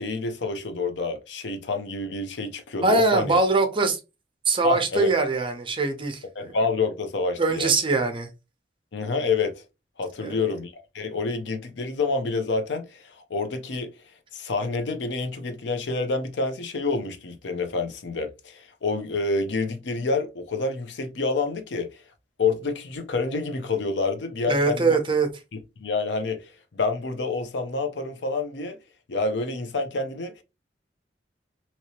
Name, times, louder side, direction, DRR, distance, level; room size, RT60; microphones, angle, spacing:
voice 1, 0.0-3.4 4.6-5.1 6.4-7.7 8.9-9.6 10.0-14.0 14.3-22.0 22.4-25.0 25.8-28.8 29.1-30.4, left 3 dB, 85° left, 0.6 m, -28 dB
voice 2, 2.8-4.0 4.5-6.5 7.4-8.3 10.2-10.4 24.5-25.3, right 3 dB, 30° right, 0.7 m, -22 dB
2.9 x 2.8 x 2.9 m
head